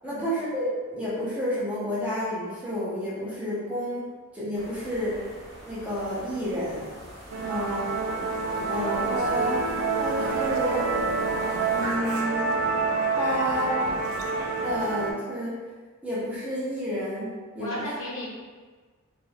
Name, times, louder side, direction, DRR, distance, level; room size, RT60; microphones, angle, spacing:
voice 1, 0.0-5.2 5.6-6.9 7.5-8.1 8.7-9.7 10.0-10.9 11.7-12.5 13.2-13.8 14.6-15.6 16.0-17.8, equal, 5° right, -9 dB, 0.5 m, -30 dB
sound 1, 4.5-12.0, equal, 30° right, 0.9 m, -44 dB
Musical instrument, 7.3-15.1, right 4 dB, 85° right, 0.4 m, -27 dB
voice 2, 17.6-18.3, equal, 80° left, -6 dB, 0.9 m, -35 dB
2.3 x 2.1 x 3.2 m, 1.4 s
head